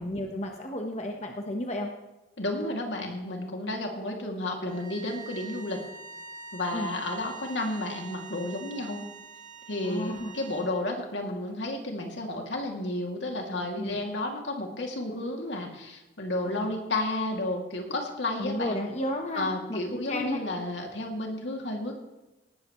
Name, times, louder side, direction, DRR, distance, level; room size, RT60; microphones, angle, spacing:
voice 1, 0.0-1.9 6.7-6.9 9.8-10.4 13.8-14.0 16.4-16.7 18.4-20.4, left 1 dB, 40° left, 3 dB, 1.2 m, -33 dB
voice 2, 2.4-5.8 6.5-9.0 9.7-18.8 19.3-21.9, left 2 dB, 80° left, 1 dB, 2.6 m, -32 dB
sound 1, 4.7-10.8, right 4 dB, 45° right, 2.0 m, -45 dB
18.5 x 12.5 x 3.2 m, 1.1 s
head